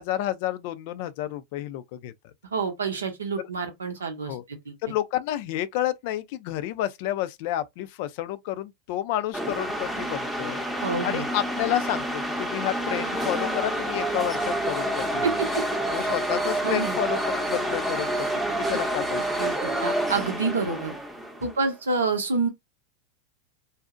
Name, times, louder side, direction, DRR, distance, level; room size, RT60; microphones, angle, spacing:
voice 1, 0.0-2.1 3.4-3.5 4.3-4.4 4.8-10.6 11.0-15.3 15.9-18.1 18.5-19.2 19.6-19.7, left 13 dB, 55° left, 0.3 m, -30 dB
voice 2, 2.4-4.8 10.8-11.3 15.2-15.6 16.6-17.0 19.4-20.9 21.4-22.5, right 4 dB, 85° right, 0.7 m, -28 dB
sound 1, 9.3-21.6, right 1 dB, ahead, 0.6 m, -28 dB
2.6 x 2.0 x 2.4 m
hypercardioid pair, 95°, 0 cm